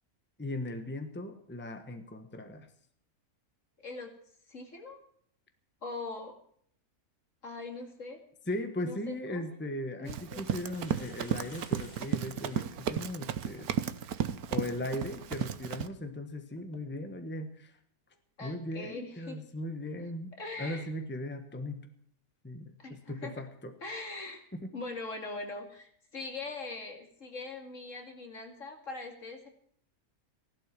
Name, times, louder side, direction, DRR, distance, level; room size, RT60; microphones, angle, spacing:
voice 1, 0.4-2.7 8.5-13.7 14.5-17.7 18.4-20.3 20.6-21.8 22.4-23.7 24.5-24.7, left 1 dB, 10° left, 7 dB, 1.3 m, -38 dB
voice 2, 3.8-4.1 4.5-5.0 5.8-6.4 7.4-8.2 8.8-9.7 10.0-10.5 14.1-14.3 18.4-19.4 20.4-20.9 22.8-23.5 23.8-24.4 24.7-29.5, left 3 dB, 60° left, 3 dB, 2.9 m, -42 dB
sound 1, 9.0-9.2 10.0-10.1 10.4-13.2 13.7-13.8 15.7-15.9 16.5-16.8, left 2 dB, 30° left, 2.1 m, -57 dB
Run, 10.1-15.9, right 9 dB, 85° right, 1.4 m, -34 dB
16.0 x 12.0 x 6.1 m, 0.63 s
omnidirectional pair, 1.5 m